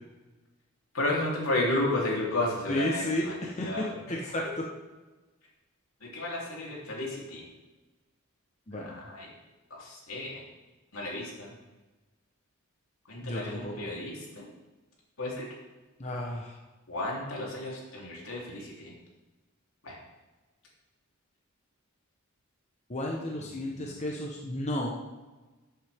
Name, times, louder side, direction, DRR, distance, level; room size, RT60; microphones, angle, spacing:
voice 1, 0.9-4.0 6.1-7.4 9.1-9.3 9.7-10.4 10.9-11.5 13.1-14.5 15.2-15.5 16.9-18.9 19.8-20.0, left 2 dB, 80° left, -3 dB, 3.4 m, -32 dB
voice 2, 2.7-4.6 8.7-9.0 13.2-13.9 16.0-16.6 22.9-24.9, left 1 dB, 35° left, -1 dB, 1.1 m, -33 dB
13.5 x 8.1 x 3.6 m, 1.2 s
head